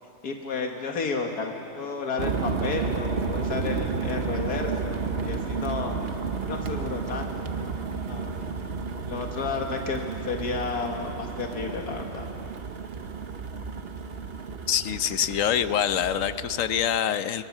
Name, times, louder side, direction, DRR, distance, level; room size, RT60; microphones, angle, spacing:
voice 1, 0.2-6.0 6.5-8.7 9.1-12.3, left 4 dB, 85° left, 2 dB, 2.1 m, -32 dB
sound 1, 2.2-16.9, right 5 dB, 45° right, 1.1 m, -32 dB
voice 2, 14.7-17.5, left 9 dB, 65° left, 12 dB, 1.0 m, -25 dB
22.5 x 22.5 x 7.3 m, 2.8 s
omnidirectional pair, 1.6 m